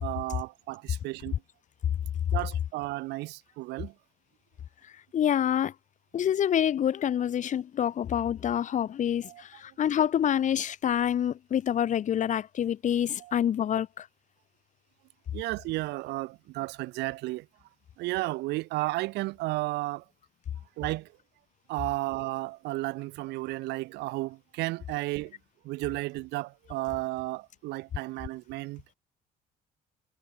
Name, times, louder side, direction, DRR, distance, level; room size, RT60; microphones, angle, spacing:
voice 1, 0.0-1.3 2.3-3.9 9.2-9.4 13.2-13.4 15.3-17.4 18.0-20.0 20.8-21.1 21.7-25.3 25.6-28.9, right 20 dB, 85° right, 1.4 m, -33 dB
voice 2, 5.1-5.7 6.1-14.1, left 9 dB, 45° left, 1.0 m, -27 dB
cardioid pair, 110°, 17 cm